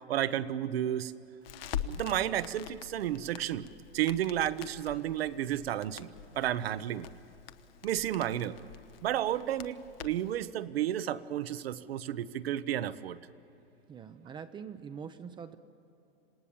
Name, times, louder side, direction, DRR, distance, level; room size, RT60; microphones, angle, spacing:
voice 1, 0.1-1.1 1.8-3.7 3.9-7.1 7.8-8.6 9.0-13.2, right 11 dB, 75° right, 14 dB, 1.0 m, -32 dB
Crackle, 1.4-10.4, left 9 dB, 70° left, 1.1 m, -44 dB
voice 2, 13.9-15.6, right 7 dB, 15° right, 9 dB, 0.6 m, -44 dB
27.0 x 18.0 x 7.3 m, 2.8 s
hypercardioid pair, 135°, 31 cm